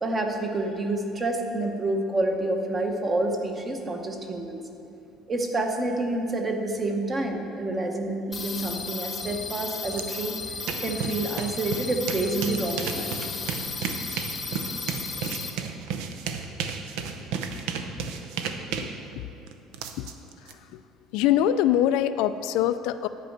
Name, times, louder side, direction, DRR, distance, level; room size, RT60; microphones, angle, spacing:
voice 1, 0.0-4.6 5.3-13.4, right 2 dB, 20° right, 3 dB, 0.9 m, -28 dB
sound 1, 8.3-15.5, left 4 dB, 20° left, 0.9 m, -34 dB
sound 2, 9.9-10.0 10.4-20.5, right 6 dB, 75° right, 0.7 m, -33 dB
voice 2, 21.1-23.1, left 11 dB, 75° left, 12 dB, 0.3 m, -23 dB
11.0 x 5.4 x 8.0 m, 2.8 s
cardioid pair, 165°, 0 cm